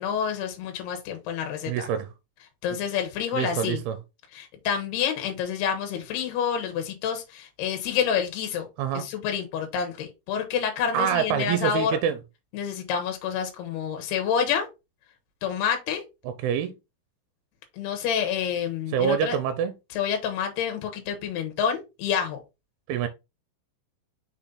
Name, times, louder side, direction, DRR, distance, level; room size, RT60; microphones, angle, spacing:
voice 1, 0.0-1.9 2.6-3.8 4.3-8.7 8.9-12.0 12.5-14.7 15.4-16.0 17.8-19.4 19.9-22.4, left 8 dB, 85° left, 3.1 m, -28 dB
voice 2, 1.7-2.1 3.3-4.0 8.8-9.0 10.9-12.2 16.3-16.7 18.9-19.7 22.9-23.1, right 8 dB, 90° right, 2.6 m, -25 dB
6.3 x 4.0 x 3.8 m
omnidirectional pair, 4.5 m